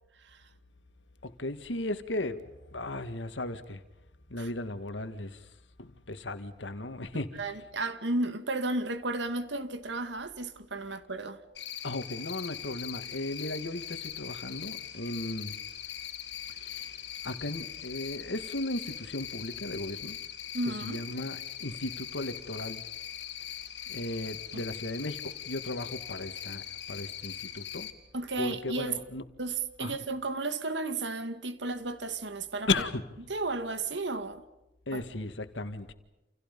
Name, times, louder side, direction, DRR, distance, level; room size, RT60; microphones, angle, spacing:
voice 1, 1.2-3.8 4.3-5.5 5.8-7.5 11.8-15.6 16.5-17.0 17.2-20.2 20.8-22.8 23.9-27.9 28.4-29.2 29.8-30.0 32.7-33.1 34.9-35.9, left 2 dB, 90° left, 2.0 m, -36 dB
voice 2, 7.4-11.4 20.5-21.0 24.5-24.6 28.1-29.0 29.4-32.7 33.3-34.4 34.9-35.0, right 2 dB, 75° right, 2.1 m, -33 dB
Cricket, 11.5-27.9, left 10 dB, 70° left, 3.0 m, -41 dB
29.5 x 28.5 x 5.4 m
head